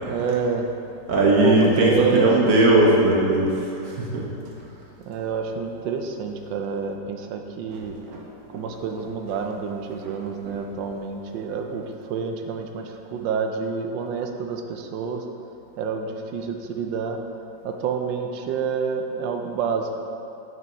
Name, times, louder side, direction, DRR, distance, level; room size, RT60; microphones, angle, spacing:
voice 1, 0.1-0.7 1.4-2.5 5.1-7.9 8.5-15.2 15.8-17.2 17.6-19.9, right 5 dB, 85° right, 4 dB, 1.3 m, -28 dB
voice 2, 1.1-3.5 3.8-4.3 8.1-8.2 8.5-8.6 10.0-10.1, right 2 dB, 60° right, -3 dB, 1.3 m, -19 dB
6.1 x 5.4 x 4.3 m, 2.7 s
omnidirectional pair, 1.9 m